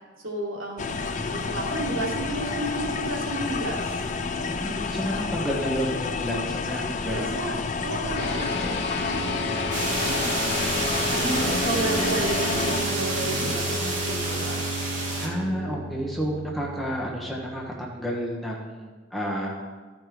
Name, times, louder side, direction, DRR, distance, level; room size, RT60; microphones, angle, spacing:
voice 1, 0.2-4.0 7.1-8.8 10.0-10.5 11.1-14.6, right 2 dB, 80° right, -3 dB, 2.1 m, -32 dB
sound 1, 0.8-12.8, left 4 dB, 40° left, 0.5 m, -30 dB
voice 2, 4.5-7.3 15.2-19.5, equal, ahead, -3 dB, 1.2 m, -30 dB
sound 2, 8.1-17.8, equal, 55° left, 1.1 m, -32 dB
sound 3, 9.7-15.3, right 2 dB, 40° right, 1.9 m, -29 dB
13.0 x 5.1 x 4.7 m, 1.3 s
head